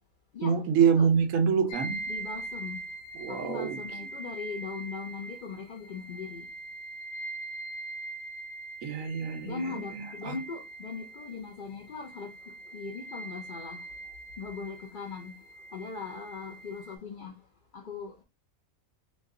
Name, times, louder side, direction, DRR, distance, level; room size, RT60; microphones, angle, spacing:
voice 1, 0.4-2.0 3.1-3.8 8.8-10.4, right 6 dB, 75° right, 1.1 m, -26 dB
sound 1, 1.7-17.0, right 2 dB, 80° left, 1.0 m, -42 dB
voice 2, 2.1-2.8 3.3-6.5 9.4-13.9 14.4-15.4 15.7-17.4 17.7-18.2, left 5 dB, 65° left, 0.5 m, -39 dB
3.1 x 2.3 x 3.6 m
omnidirectional pair, 1.4 m